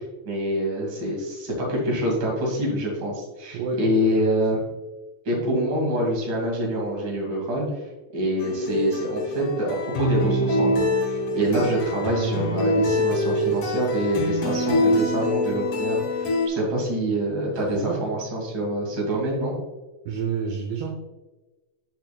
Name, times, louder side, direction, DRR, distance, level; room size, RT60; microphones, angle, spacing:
voice 1, 0.2-4.6 5.2-7.7 8.1-19.5, equal, 45° right, -2 dB, 1.5 m, -26 dB
voice 2, 3.5-3.9 4.2-4.6 11.6-11.8 17.7-18.0 20.1-20.9, right 6 dB, 80° right, 1 dB, 2.5 m, -29 dB
sound 1, 8.4-16.5, left 1 dB, 90° left, 1.8 m, -24 dB
9.0 x 6.3 x 2.3 m, 1.1 s
omnidirectional pair, 5.8 m